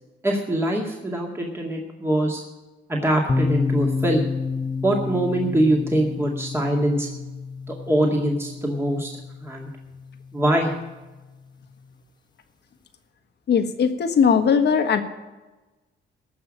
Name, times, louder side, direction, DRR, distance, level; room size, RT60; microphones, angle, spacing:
voice 1, 0.2-2.4 2.9-4.2 4.8-7.1 7.7-9.1 9.4-9.7 10.3-10.7, right 1 dB, 10° right, -1 dB, 2.1 m, -23 dB
sound 1, 3.3-11.0, left 4 dB, 20° left, 1.1 m, -29 dB
voice 2, 13.5-15.0, left 6 dB, 60° left, 8 dB, 1.5 m, -19 dB
15.0 x 6.0 x 8.8 m, 1.2 s
cardioid pair, 90°, 20 cm